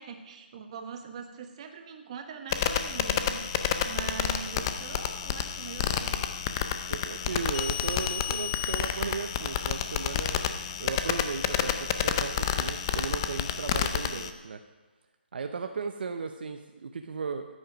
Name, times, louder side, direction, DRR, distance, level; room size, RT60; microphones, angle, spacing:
voice 1, 0.0-6.2, right 6 dB, 35° right, 5 dB, 1.3 m, -42 dB
sound 1, 2.5-14.3, left 9 dB, 25° left, 0.6 m, -30 dB
voice 2, 6.9-10.4 10.8-14.6 15.3-17.5, right 5 dB, 60° right, 6 dB, 0.8 m, -36 dB
13.5 x 8.8 x 5.1 m, 1.2 s
hypercardioid pair, 160°, 6 cm